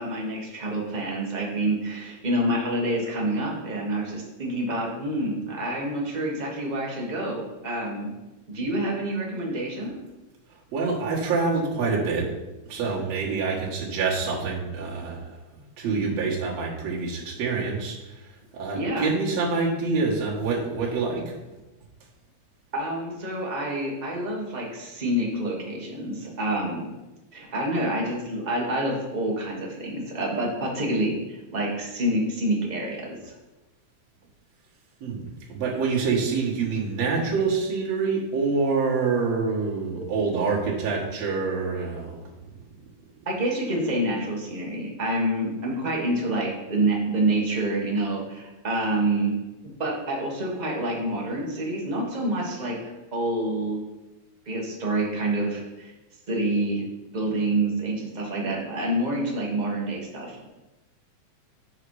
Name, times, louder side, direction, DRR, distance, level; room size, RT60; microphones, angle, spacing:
voice 1, 0.0-8.1 8.5-9.9 18.7-19.1 22.7-26.9 27.3-33.3 40.0-40.1 43.2-49.3 49.8-53.8 54.4-55.9 56.3-56.8 57.1-60.4, right 1 dB, 50° right, -2 dB, 0.5 m, -27 dB
voice 2, 10.7-12.3 12.7-15.4 15.8-21.3 35.0-42.2, right 4 dB, 65° right, -4 dB, 2.7 m, -26 dB
7.8 x 5.1 x 4.8 m, 1.1 s
omnidirectional pair, 3.4 m